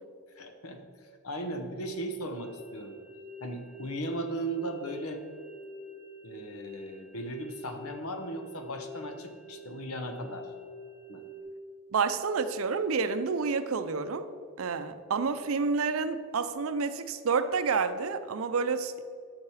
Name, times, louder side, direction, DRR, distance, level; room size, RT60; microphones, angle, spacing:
voice 1, 0.3-3.0 3.4-5.2 6.2-10.5 11.1-11.2, right 1 dB, 85° left, 7 dB, 0.9 m, -37 dB
sound 1, 2.3-11.4, left 1 dB, 25° left, 0.9 m, -47 dB
voice 2, 11.9-14.3 14.6-19.0, right 5 dB, 75° right, 11 dB, 0.5 m, -29 dB
7.3 x 6.0 x 4.8 m, 2.1 s
head